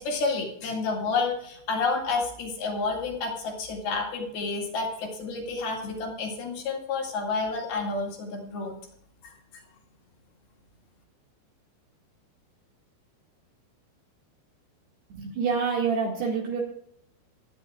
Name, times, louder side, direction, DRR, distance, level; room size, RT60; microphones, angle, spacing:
voice 1, 0.0-8.8 9.2-9.3, left 4 dB, 55° left, 0 dB, 3.8 m, -30 dB
voice 2, 15.1-16.6, right 5 dB, 60° right, -2 dB, 3.6 m, -27 dB
25.0 x 10.5 x 2.4 m, 0.68 s
omnidirectional pair, 5.7 m